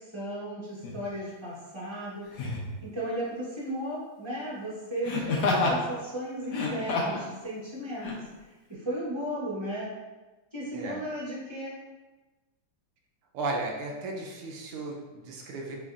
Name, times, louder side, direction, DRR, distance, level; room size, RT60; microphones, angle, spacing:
voice 1, 0.0-8.2 8.7-9.9 10.5-11.8, right 1 dB, 15° right, -8 dB, 1.0 m, -35 dB
Laughter, 0.8-1.0 2.3-2.7 5.0-5.8 6.4-7.3 8.0-8.2, left 3 dB, 65° left, 1.3 m, -28 dB
voice 2, 13.3-15.8, right 2 dB, 80° right, 0 dB, 1.6 m, -35 dB
6.0 x 3.2 x 2.5 m, 1.2 s
omnidirectional pair, 2.4 m